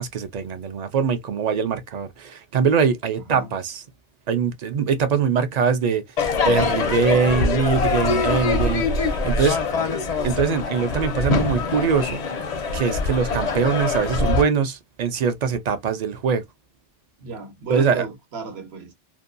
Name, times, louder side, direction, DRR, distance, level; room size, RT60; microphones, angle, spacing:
voice 1, 0.0-3.8 4.3-6.0 6.5-8.8 9.1-9.7 10.2-12.2 12.7-16.4 17.7-18.0, right 6 dB, 55° right, 0.5 m, -22 dB
Crowd / Fireworks, 6.2-14.4, left 4 dB, 50° left, 0.5 m, -23 dB
voice 2, 8.5-8.9 9.7-9.9 17.2-18.9, right 5 dB, 75° right, 1.1 m, -34 dB
2.6 x 2.2 x 2.4 m
omnidirectional pair, 1.1 m